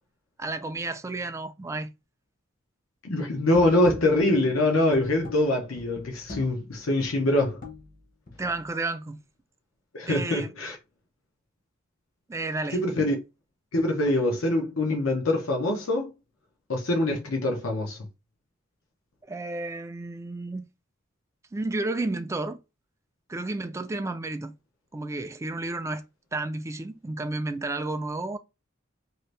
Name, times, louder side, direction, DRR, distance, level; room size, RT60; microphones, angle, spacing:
voice 1, 0.4-1.9 8.4-9.2 10.1-10.5 12.3-12.8 19.3-20.7 21.5-22.6 23.3-24.5 24.9-26.0 26.3-28.4, right 2 dB, 15° right, 0.3 m, -31 dB
voice 2, 3.0-7.6 9.9-10.8 12.7-13.2 13.7-16.1 16.7-18.0, left 1 dB, 85° left, 0.8 m, -24 dB
sound 1, 3.5-8.7, left 2 dB, 40° left, 0.8 m, -43 dB
2.8 x 2.6 x 3.1 m
head